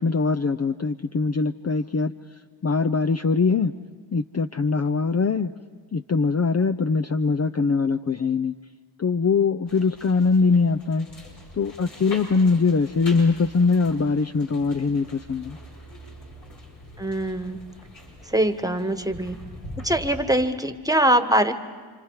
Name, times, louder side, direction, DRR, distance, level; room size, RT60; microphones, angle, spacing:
voice 1, 0.0-2.1 2.6-3.7 4.1-5.5 5.9-8.5 9.0-11.1 11.5-15.6, left 4 dB, 30° left, 7 dB, 0.6 m, -22 dB
sound 1, 9.7-20.2, left 1 dB, 75° left, 6.0 m, -43 dB
voice 2, 17.0-17.6 18.3-19.4 19.8-21.5, right 1 dB, 5° right, 8 dB, 1.5 m, -22 dB
29.0 x 26.0 x 4.9 m, 1.5 s
cardioid pair, 45°, 50 cm